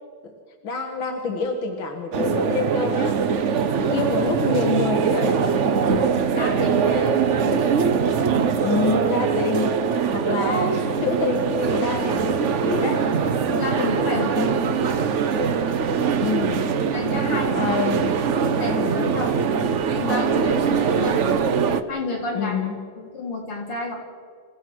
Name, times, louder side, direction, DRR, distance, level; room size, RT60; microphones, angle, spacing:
voice 1, 0.6-3.3 3.9-5.6 8.6-9.7 10.1-13.0 16.2-16.7 17.5-18.1 22.3-22.8, left 3 dB, 65° left, 3 dB, 2.3 m, -26 dB
sound 1, 2.1-21.8, right 6 dB, 60° right, 0.7 m, -22 dB
voice 2, 6.3-7.2 13.4-15.0 16.9-17.6 18.6-19.3 19.9-21.2 21.9-22.7 23.0-23.9, left 3 dB, 85° left, -3 dB, 5.1 m, -30 dB
28.0 x 16.0 x 6.2 m, 2.1 s
omnidirectional pair, 2.4 m